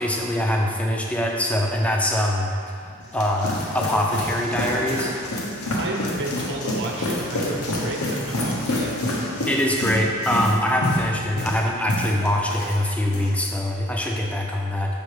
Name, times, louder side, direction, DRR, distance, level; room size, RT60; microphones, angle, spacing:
voice 1, 0.0-2.8 3.1-5.1 9.5-15.0, left 1 dB, 5° left, 0 dB, 0.6 m, -23 dB
sound 1, 2.8-12.8 13.1-13.5, left 1 dB, 85° left, 1.2 m, -28 dB
voice 2, 5.7-8.9, right 1 dB, 55° right, -1 dB, 1.0 m, -31 dB
6.9 x 5.3 x 4.9 m, 2.3 s
head